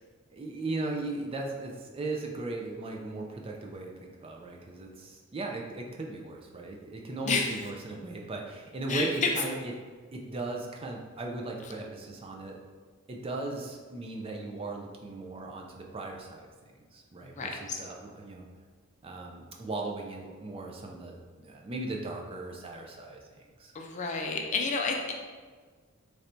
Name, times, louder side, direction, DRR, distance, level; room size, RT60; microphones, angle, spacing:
voice 1, 0.3-9.7 10.1-12.6 13.1-16.5 16.9-18.5 19.0-21.2 21.4-23.7, right 2 dB, 25° right, 0 dB, 0.3 m, -37 dB
voice 2, 8.9-9.3 17.3-17.8 23.7-25.1, left 4 dB, 35° left, 1 dB, 0.4 m, -30 dB
3.2 x 2.6 x 4.3 m, 1.5 s
head